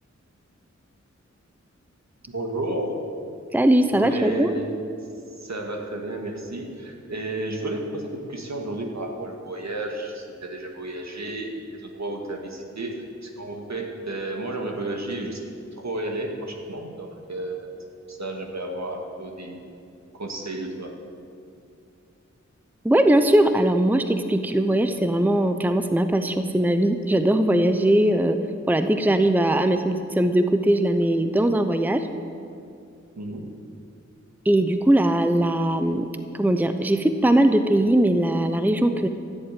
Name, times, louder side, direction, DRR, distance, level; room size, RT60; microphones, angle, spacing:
voice 1, 2.3-3.0 3.9-17.7 18.1-19.7 20.1-20.9 33.1-33.5, right 2 dB, 65° right, 2 dB, 2.0 m, -32 dB
voice 2, 3.5-4.5 22.8-28.4 28.7-32.1 34.4-36.1 36.4-39.1, right 1 dB, 5° right, 8 dB, 0.7 m, -20 dB
14.5 x 7.7 x 9.1 m, 2.5 s
wide cardioid pair, 60°, 29 cm